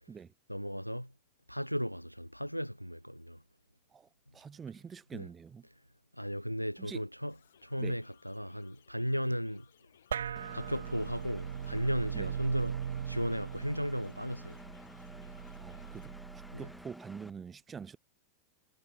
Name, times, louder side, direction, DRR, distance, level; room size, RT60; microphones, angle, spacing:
voice 1, 0.5-1.1 1.5-3.4 5.1-5.3 6.1-7.4 7.6-9.7 10.5-14.6 16.5-16.7, equal, 90° left, 0.8 m, -35 dB
voice 2, 3.9-5.7 6.8-7.0 7.8-8.0 12.1-12.4 15.5-18.0, right 6 dB, 20° right, 0.9 m, -46 dB
sound 1, 7.3-16.2, left 9 dB, 65° left, 6.0 m, -65 dB
sound 2, 10.1-16.8, right 8 dB, 65° right, 1.0 m, -40 dB
Engine, 10.4-17.3, left 1 dB, 5° left, 5.0 m, -52 dB
figure-of-eight pair, 90°, 0 cm